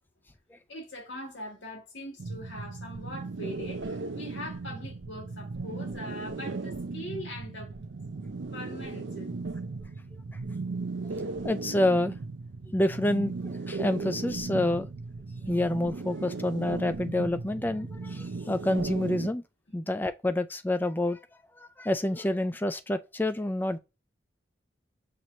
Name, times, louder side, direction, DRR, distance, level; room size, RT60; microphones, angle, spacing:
voice 1, 0.7-7.7 8.5-9.4, left 1 dB, 80° left, 2.3 m, -41 dB
Wah wah effect, 2.2-19.3, right 3 dB, 80° right, 0.5 m, -36 dB
voice 2, 11.4-12.1 12.7-14.9 15.5-19.4 19.7-21.2 21.6-23.8, left 1 dB, 10° left, 0.3 m, -28 dB
5.9 x 3.0 x 2.7 m
head